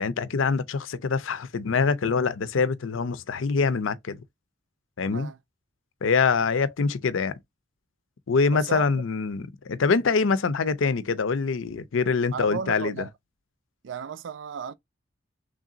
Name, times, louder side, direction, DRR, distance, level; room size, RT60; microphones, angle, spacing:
voice 1, 0.0-4.2 5.0-5.3 6.0-7.4 8.3-13.0, left 5 dB, 85° left, 0.5 m, -24 dB
voice 2, 5.0-5.4 8.5-8.9 12.3-13.1 13.8-14.7, right 6 dB, 70° right, 0.4 m, -34 dB
3.4 x 2.5 x 3.8 m
head